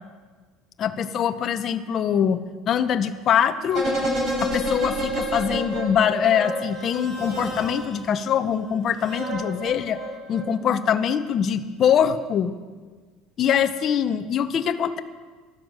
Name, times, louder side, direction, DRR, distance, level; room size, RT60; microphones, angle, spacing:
voice 1, 0.8-2.4 2.7-3.9 4.4-10.0 10.3-12.5 13.4-15.0, left 8 dB, 35° left, 8 dB, 0.8 m, -23 dB
sound 1, 3.7-8.1 8.9-10.8 11.1-11.2, equal, 30° right, 4.8 m, -29 dB
12.5 x 12.0 x 7.5 m, 1.4 s
cardioid pair, 160°, 0 cm